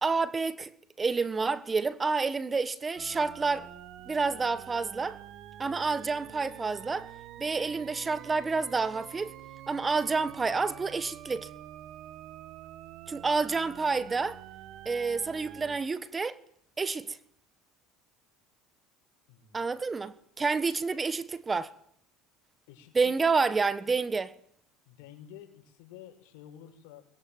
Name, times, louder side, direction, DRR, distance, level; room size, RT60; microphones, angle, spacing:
voice 1, 0.0-0.7 1.0-3.7 4.1-5.2 5.6-7.1 7.4-9.3 9.7-11.5 13.1-14.4 14.8-16.4 16.8-17.2 19.5-21.7 22.9-24.3, right 4 dB, 20° right, 1.3 m, -29 dB
sound 1, 3.0-15.8, right 12 dB, 55° right, 1.7 m, -47 dB
voice 2, 19.3-19.7 22.7-23.1 24.9-27.1, left 10 dB, 75° left, 5.9 m, -50 dB
23.0 x 21.5 x 9.3 m
supercardioid pair, 115°, 0 cm